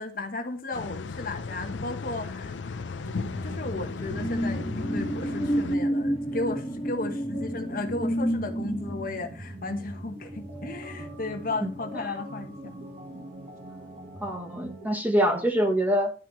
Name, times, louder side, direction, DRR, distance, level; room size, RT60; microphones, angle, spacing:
voice 1, 0.0-2.9 3.3-12.8 13.1-13.3, left 2 dB, 50° left, 1.1 m, -35 dB
sound 1, 0.7-5.8, left 4 dB, 80° left, 0.5 m, -36 dB
sound 2, 2.9-14.9, right 1 dB, 40° right, 1.4 m, -42 dB
sound 3, 3.2-12.2 12.5-12.8, equal, 10° left, 2.3 m, -31 dB
voice 2, 14.2-16.1, equal, 10° right, 1.2 m, -25 dB
11.5 x 4.6 x 4.4 m
head